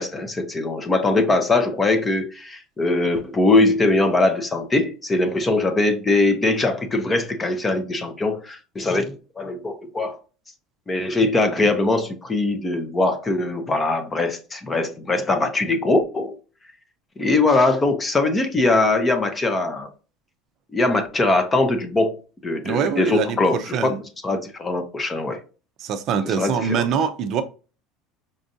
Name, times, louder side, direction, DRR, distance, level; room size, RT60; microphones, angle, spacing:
voice 1, 0.0-10.2 10.9-16.4 17.2-19.9 20.7-22.2 22.4-23.9 24.2-25.4 26.2-26.9, left 2 dB, 15° left, 0.6 m, -21 dB
voice 2, 22.6-24.0 25.8-27.4, right 7 dB, 45° right, 0.5 m, -24 dB
5.2 x 2.5 x 2.6 m
cardioid pair, 155°, 0 cm